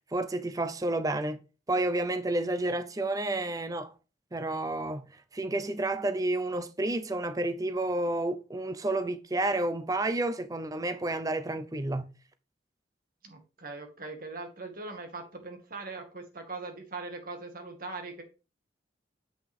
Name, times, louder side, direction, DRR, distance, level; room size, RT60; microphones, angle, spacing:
voice 1, 0.1-1.4 1.7-3.9 4.3-5.0 5.3-12.1, right 2 dB, 20° right, 0.5 m, -30 dB
voice 2, 13.2-18.2, right 3 dB, 50° right, 2.1 m, -41 dB
7.9 x 5.8 x 3.6 m
head